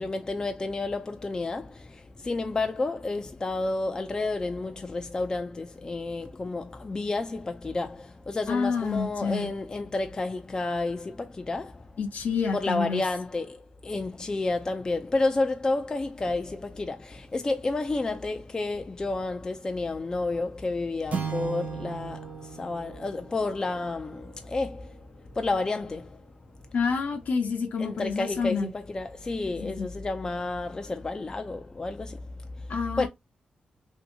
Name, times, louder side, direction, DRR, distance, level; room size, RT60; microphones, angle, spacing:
voice 1, 0.0-11.9 12.5-25.0 25.4-26.2 27.8-32.2 33.0-33.1, left 3 dB, 25° left, 0.3 m, -30 dB
voice 2, 8.5-9.5 12.0-13.0 26.7-28.7 29.5-29.9 32.7-33.1, left 5 dB, 65° left, 0.7 m, -28 dB
sound 1, 21.1-25.6, right 6 dB, 60° right, 1.2 m, -38 dB
2.7 x 2.7 x 2.6 m
wide cardioid pair, 110°, 3 cm